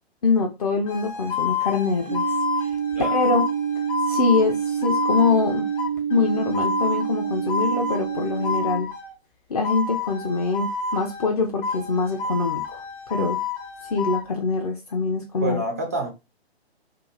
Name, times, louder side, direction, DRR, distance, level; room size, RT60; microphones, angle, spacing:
voice 1, 0.2-2.7 3.1-3.5 4.1-5.7 6.1-8.9 9.5-12.8 13.1-13.4 13.9-15.6, left 4 dB, 35° left, 0.5 m, -24 dB
sound 1, 0.9-9.2 9.6-11.3 11.6-14.3, left 4 dB, 55° left, 1.1 m, -29 dB
sound 2, 2.1-8.8, right 8 dB, 85° right, 0.8 m, -27 dB
voice 2, 15.4-16.1, right 2 dB, 15° right, 0.3 m, -27 dB
2.8 x 2.5 x 3.6 m
figure-of-eight pair, 125°, 32 cm